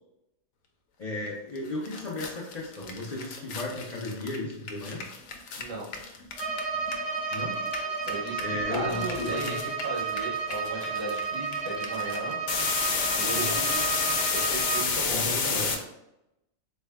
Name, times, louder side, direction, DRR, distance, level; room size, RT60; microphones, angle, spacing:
voice 1, 1.0-5.0 7.3-7.6 8.4-9.6 13.3-13.6 15.1-15.7, left 2 dB, 50° left, -4 dB, 0.5 m, -35 dB
sound 1, 1.6-1.7 1.8-7.3 7.6-15.7, left 5 dB, 80° left, 1.0 m, -30 dB
voice 2, 5.5-5.9 8.1-12.4 13.2-14.0 14.3-15.8, right 2 dB, 80° right, -5 dB, 1.4 m, -36 dB
Bowed string instrument, 6.3-14.9, right 5 dB, 45° right, 0.5 m, -32 dB
3.5 x 2.2 x 3.4 m, 0.87 s
omnidirectional pair, 1.4 m